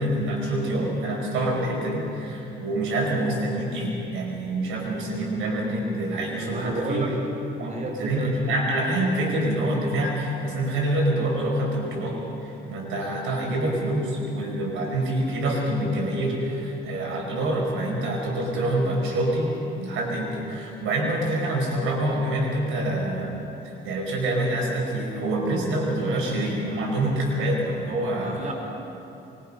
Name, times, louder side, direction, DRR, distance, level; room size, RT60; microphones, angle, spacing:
voice 1, 0.0-7.1 7.6-19.5 19.8-23.4 23.6-28.4, right 1 dB, 85° right, -1 dB, 5.7 m, -26 dB
voice 2, 6.4-7.2 7.7-8.3 28.2-28.5, right 2 dB, 40° right, 1 dB, 4.0 m, -31 dB
24.0 x 22.5 x 5.7 m, 3.0 s
cardioid pair, 90°, 20 cm